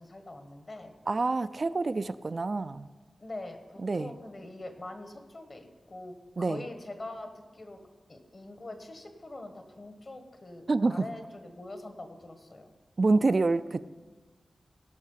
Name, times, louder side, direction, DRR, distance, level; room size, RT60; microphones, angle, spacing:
voice 1, 0.0-0.9 3.2-7.8 8.1-12.7, left 2 dB, 45° left, 6 dB, 1.6 m, -44 dB
voice 2, 1.1-2.9 3.8-4.1 6.4-6.6 10.7-11.1 13.0-13.9, right 3 dB, 45° right, 12 dB, 0.3 m, -27 dB
17.5 x 6.4 x 5.7 m, 1.3 s
wide cardioid pair, 85°, 0 cm